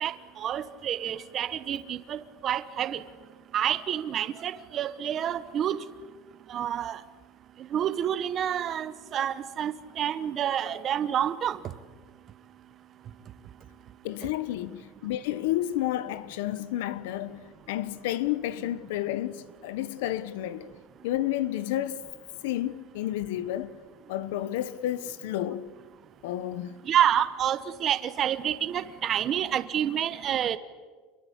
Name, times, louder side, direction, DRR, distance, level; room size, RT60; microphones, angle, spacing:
voice 1, 0.0-3.0 3.5-5.8 6.5-7.0 7.7-11.6 26.8-30.6, right 10 dB, 25° right, 0.9 m, -28 dB
voice 2, 14.0-20.7 21.0-22.0 22.4-23.8 24.1-25.7 26.2-26.7, left 13 dB, 80° left, 1.2 m, -31 dB
28.0 x 22.5 x 8.3 m
cardioid pair, 175°, 0 cm